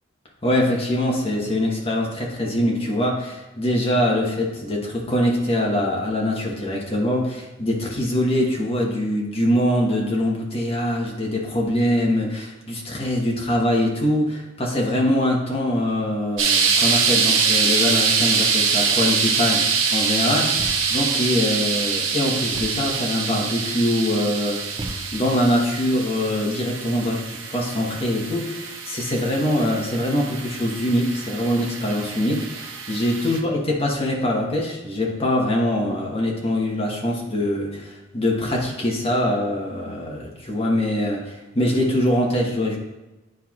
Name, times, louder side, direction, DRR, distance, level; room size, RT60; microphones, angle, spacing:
voice 1, 0.4-24.8 25.1-42.8, left 1 dB, 30° left, -1 dB, 1.3 m, -23 dB
sound 1, 16.4-33.4, right 5 dB, 70° right, 0.9 m, -24 dB
Thump thud, 20.6-21.1 22.5-23.0 24.8-25.5, right 1 dB, 20° right, 0.6 m, -35 dB
10.0 x 4.4 x 2.5 m, 1.1 s
head